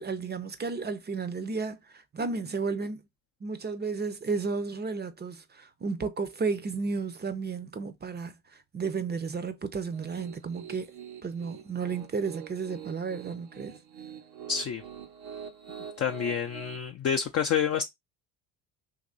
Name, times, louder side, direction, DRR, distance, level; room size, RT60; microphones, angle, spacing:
voice 1, 0.0-3.0 3.4-10.9 11.2-13.8, right 4 dB, 20° right, 0.6 m, -33 dB
Piano, 9.9-16.8, right 8 dB, 80° right, 1.0 m, -45 dB
voice 2, 14.5-14.8 16.0-17.8, left 7 dB, 30° left, 0.5 m, -28 dB
2.9 x 2.7 x 3.7 m
hypercardioid pair, 60°, 50 cm